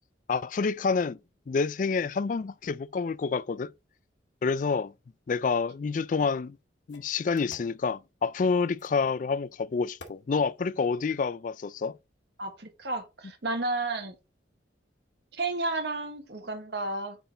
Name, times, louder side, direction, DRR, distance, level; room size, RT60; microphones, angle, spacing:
voice 1, 0.3-1.2 1.5-3.7 4.4-4.9 5.3-6.6 6.9-12.0, left 4 dB, 45° left, 0.3 m, -28 dB
sound 1, 6.1-6.2 6.9-7.8 8.8-9.1 10.0-10.2, left 2 dB, 75° left, 1.8 m, -49 dB
voice 2, 12.4-14.1 15.3-17.2, right 2 dB, 60° right, 1.4 m, -32 dB
8.1 x 3.9 x 3.8 m
head